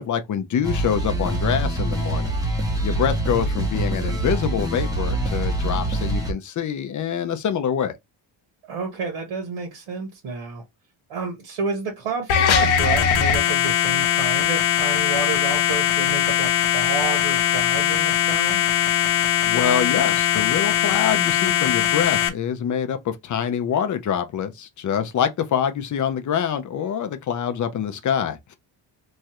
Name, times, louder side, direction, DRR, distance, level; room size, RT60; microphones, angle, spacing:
voice 1, 0.0-2.4 2.8-7.9 19.5-28.6, left 8 dB, 40° left, 0.4 m, -25 dB
sound 1, 0.6-6.3, right 1 dB, 10° right, 0.6 m, -24 dB
voice 2, 8.7-10.6 11.1-18.6, right 4 dB, 85° right, 1.3 m, -30 dB
sound 2, 12.3-22.3, left 10 dB, 75° left, 0.8 m, -20 dB
3.1 x 2.3 x 2.8 m
wide cardioid pair, 175°, 48 cm